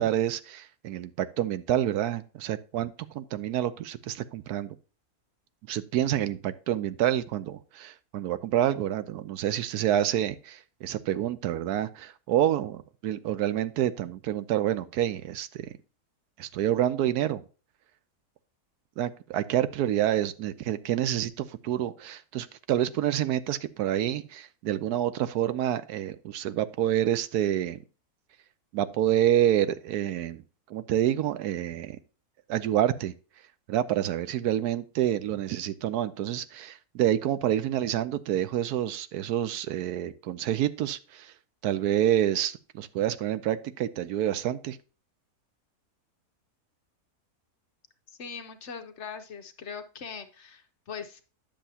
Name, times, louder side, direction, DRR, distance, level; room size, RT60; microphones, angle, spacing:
voice 1, 0.0-4.8 5.7-15.7 16.4-17.4 19.0-27.8 28.7-30.4 30.7-32.0 32.5-33.1 33.7-41.3 41.6-44.8, right 11 dB, 85° right, 14 dB, 1.2 m, -28 dB
voice 2, 48.1-51.2, left 6 dB, 55° left, 7 dB, 1.0 m, -41 dB
10.0 x 6.9 x 2.8 m, 0.35 s
omnidirectional pair, 1.6 m